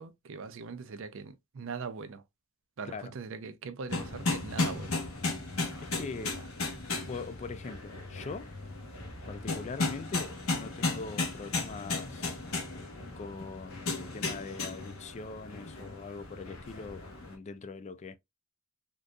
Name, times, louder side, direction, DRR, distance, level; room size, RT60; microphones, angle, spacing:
voice 1, 0.0-2.2 2.8-5.0 5.4-5.6 6.2-6.5, right 5 dB, 65° right, 0.5 m, -41 dB
sound 1, 3.9-17.3, left 3 dB, 85° left, 1.1 m, -35 dB
voice 2, 5.9-6.4 7.1-8.5 9.3-12.3 13.2-18.2, left 4 dB, 35° left, 0.3 m, -42 dB
3.7 x 2.7 x 2.2 m
head